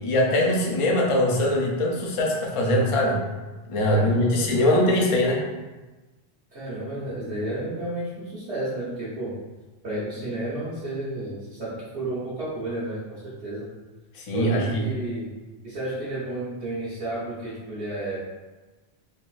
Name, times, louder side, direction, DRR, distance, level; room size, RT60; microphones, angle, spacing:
voice 1, 0.0-3.2 3.7-5.4 14.1-14.8, left 1 dB, 45° left, -1 dB, 0.4 m, -22 dB
voice 2, 3.9-4.9 6.5-9.3 9.8-13.7 14.3-15.3 15.6-18.2, right 1 dB, 85° right, -10 dB, 1.3 m, -32 dB
3.7 x 2.6 x 2.4 m, 1.2 s
omnidirectional pair, 1.1 m